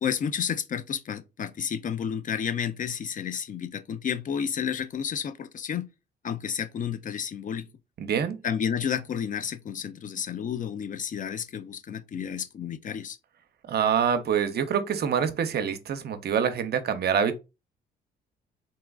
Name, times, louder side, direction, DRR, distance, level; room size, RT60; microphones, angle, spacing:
voice 1, 0.0-5.9 6.2-7.7 8.4-13.2, left 8 dB, 40° left, 0.4 m, -31 dB
voice 2, 8.0-8.4 13.7-17.4, right 7 dB, 55° right, 0.6 m, -26 dB
4.0 x 2.3 x 2.3 m
cardioid pair, 90°, 20 cm